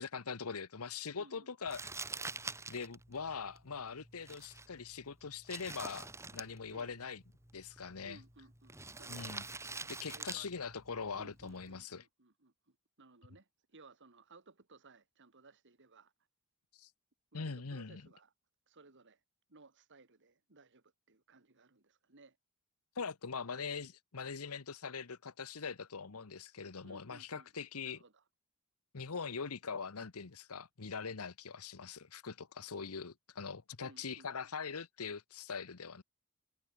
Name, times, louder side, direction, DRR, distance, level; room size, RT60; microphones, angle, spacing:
voice 1, 0.0-1.8 2.7-7.2 7.5-8.2 9.1-9.4 9.9-12.0 16.7-16.9 17.3-18.0 23.0-28.0 28.9-36.0, left 5 dB, 75° left, 1.0 m, -42 dB
voice 2, 1.2-1.5 6.7-6.9 8.0-9.7 10.1-10.5 11.1-16.1 17.3-18.3 18.7-19.2 19.5-22.4 26.8-28.2 33.8-34.3, right 3 dB, 55° right, 2.3 m, -60 dB
Crumpling crinkling, 1.7-11.8, right 3 dB, 15° right, 2.4 m, -47 dB
sound 1, 5.6-9.2, left 1 dB, 45° left, 7.5 m, -75 dB
head